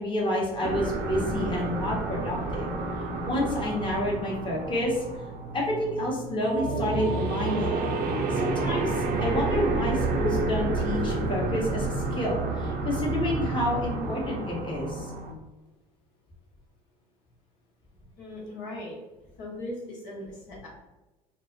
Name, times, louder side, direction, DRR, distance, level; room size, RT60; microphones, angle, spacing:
voice 1, 0.0-2.7 3.0-5.0 5.5-7.7 8.3-15.1, left 1 dB, 25° left, -3 dB, 1.0 m, -29 dB
sound 1, 0.6-15.3, right 3 dB, 55° right, 0.6 m, -30 dB
voice 2, 18.2-19.0 19.4-20.7, left 1 dB, 65° left, -4 dB, 1.0 m, -38 dB
2.3 x 2.1 x 3.8 m, 1.1 s
hypercardioid pair, 65°, 20 cm